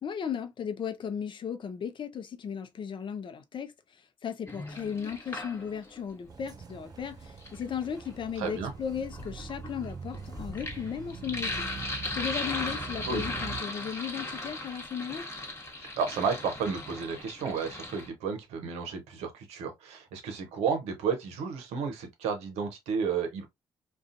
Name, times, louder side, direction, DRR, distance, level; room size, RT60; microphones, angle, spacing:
voice 1, 0.0-15.3, left 7 dB, 50° left, 0.5 m, -36 dB
Sink (filling or washing), 4.5-6.0 7.1-18.1, left 2 dB, 25° left, 1.1 m, -38 dB
sound 1, 6.3-13.6, right 5 dB, 40° right, 0.3 m, -43 dB
voice 2, 8.4-8.7 13.1-13.2 15.8-23.5, right 6 dB, 80° right, 0.7 m, -32 dB
2.5 x 2.3 x 2.5 m
hypercardioid pair, 50°, 11 cm